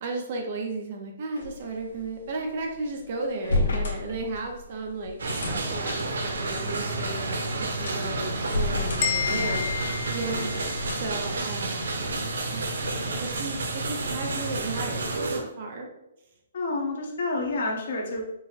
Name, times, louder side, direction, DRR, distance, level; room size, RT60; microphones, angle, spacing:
voice 1, 0.0-5.2 5.5-9.6 10.1-10.5 10.9-15.0 15.3-15.9, right 3 dB, 35° right, 2 dB, 0.6 m, -34 dB
sound 1, 1.4-11.4, left 2 dB, 80° left, 1.1 m, -33 dB
sound 2, 5.2-15.4, right 2 dB, 90° right, 0.7 m, -30 dB
sound 3, 9.0-11.0, left 8 dB, 30° left, 0.4 m, -30 dB
voice 2, 9.2-9.6 10.2-10.5 16.5-18.2, left 2 dB, 50° left, 0 dB, 1.0 m, -30 dB
4.7 x 2.1 x 4.0 m, 0.84 s
hypercardioid pair, 175°, 0 cm